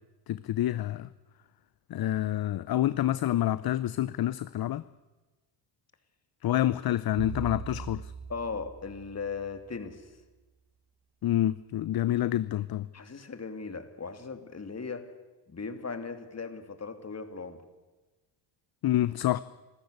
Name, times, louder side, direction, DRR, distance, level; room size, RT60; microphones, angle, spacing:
voice 1, 0.3-1.1 1.9-4.8 6.4-8.1 11.2-12.9 18.8-19.4, left 13 dB, 45° left, 17 dB, 0.7 m, -28 dB
sound 1, 7.2-9.7, right 5 dB, 80° right, 6.0 m, -40 dB
voice 2, 8.3-10.1 12.9-15.1 15.5-17.6, left 4 dB, 30° left, 8 dB, 2.8 m, -38 dB
27.5 x 14.0 x 8.1 m, 1.2 s
supercardioid pair, 70°, 50 cm